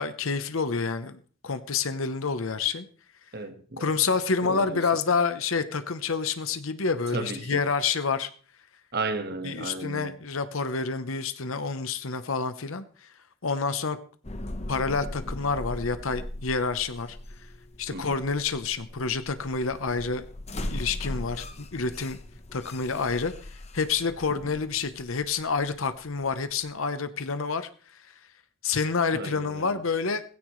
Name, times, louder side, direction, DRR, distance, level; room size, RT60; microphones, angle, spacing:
voice 1, 0.0-2.9 3.8-8.3 9.4-13.1 13.4-14.0 14.7-17.2 17.8-20.3 20.6-22.2 22.5-23.3 23.7-28.0 28.6-30.2, left 4 dB, 70° left, 0.9 m, -28 dB
voice 2, 3.3-3.9 4.4-4.8 7.1-7.6 8.9-10.1 17.9-18.2 29.1-29.8, right 3 dB, 50° right, 1.5 m, -34 dB
sound 1, 14.2-26.7, left 1 dB, 30° left, 1.0 m, -39 dB
17.0 x 15.5 x 3.2 m
head